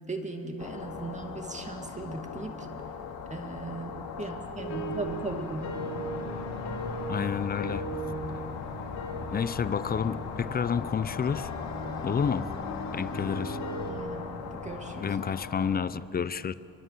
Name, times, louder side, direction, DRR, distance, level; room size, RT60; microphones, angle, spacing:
voice 1, 0.1-2.7 3.3-5.7 13.9-15.1, right 2 dB, 20° right, 4 dB, 2.3 m, -38 dB
sound 1, 0.6-15.8, left 6 dB, 85° left, 2.5 m, -39 dB
sound 2, 4.6-13.9, right 1 dB, 45° left, 4.9 m, -38 dB
voice 2, 7.1-7.9 9.3-11.5 12.0-12.5 12.9-13.6 15.0-16.5, left 6 dB, 25° left, 16 dB, 0.5 m, -29 dB
25.5 x 22.5 x 7.5 m, 2.8 s
cardioid pair, 120°, 36 cm